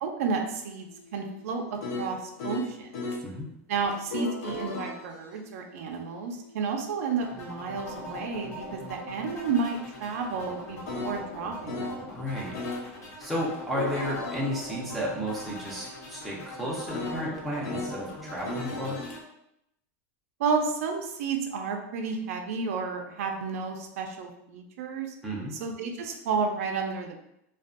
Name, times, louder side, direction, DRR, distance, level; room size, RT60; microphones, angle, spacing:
voice 1, 0.0-2.9 3.7-12.1 20.4-25.1 25.6-27.2, right 5 dB, 65° right, 3 dB, 0.4 m, -31 dB
sound 1, 0.9-3.3 3.9-12.0 12.5-12.9 13.5-18.0 18.4-19.2, left 2 dB, 70° left, 0.6 m, -39 dB
sound 2, 7.2-19.2, left 1 dB, 90° left, 1.0 m, -42 dB
voice 2, 12.0-12.5 13.2-19.0 25.2-25.5, equal, ahead, -6 dB, 0.4 m, -33 dB
2.5 x 2.2 x 2.4 m, 0.82 s
supercardioid pair, 170°, 8 cm